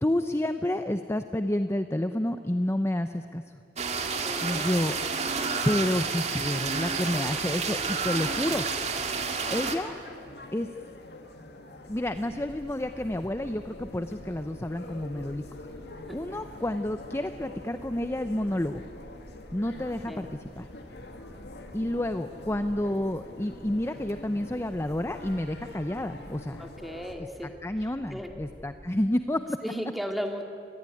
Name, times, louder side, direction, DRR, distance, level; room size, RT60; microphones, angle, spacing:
voice 1, 0.0-3.4 4.4-5.0 5.7-8.7 9.5-9.9 10.5-10.7 11.8-15.4 16.1-18.8 19.5-20.7 21.7-26.7 27.2-27.3 27.6-29.6, left 1 dB, 15° left, 9 dB, 0.7 m, -29 dB
sound 1, 3.8-9.8, right 5 dB, 40° right, 2.1 m, -30 dB
voice 2, 4.3-4.8 16.1-16.2 20.1-20.3 26.6-27.5 28.1-28.3 29.6-30.4, equal, ahead, 3 dB, 2.3 m, -35 dB
sound 2, 8.2-27.2, left 2 dB, 70° left, 2.2 m, -46 dB
sound 3, 11.9-28.9, equal, 15° right, 3.8 m, -50 dB
25.5 x 20.0 x 9.9 m, 2.5 s
head